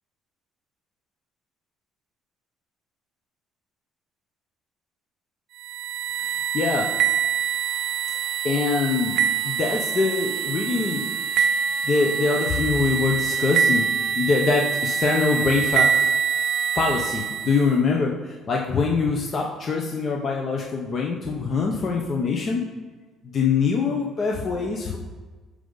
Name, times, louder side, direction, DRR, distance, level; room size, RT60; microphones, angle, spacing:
sound 1, 5.6-17.7, right 7 dB, 70° right, 0.5 m, -25 dB
voice 1, 6.2-6.9 8.4-11.1 11.4-11.5 11.8-13.9 14.1-16.1 16.7-22.6 23.2-25.0, left 4 dB, 35° left, 0 dB, 0.9 m, -24 dB
13.0 x 5.0 x 4.0 m, 1.3 s
cardioid pair, 140°, 0 cm